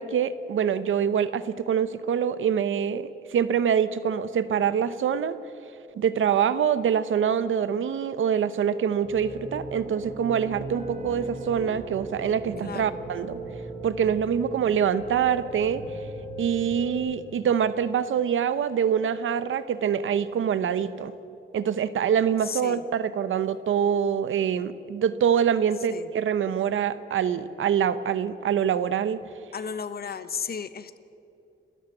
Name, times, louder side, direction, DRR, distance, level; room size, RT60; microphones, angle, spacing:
voice 1, 0.0-5.4 6.0-13.4 13.8-15.8 16.4-21.1 21.5-29.2, right 8 dB, 85° right, 14 dB, 0.9 m, -25 dB
sound 1, 9.0-16.9, right 2 dB, 40° right, 3.6 m, -38 dB
voice 2, 12.6-12.9 22.4-22.8 25.9-26.1 29.5-31.0, left 6 dB, 50° left, 13 dB, 1.0 m, -34 dB
28.5 x 13.0 x 7.9 m, 2.7 s
cardioid pair, 105°, 20 cm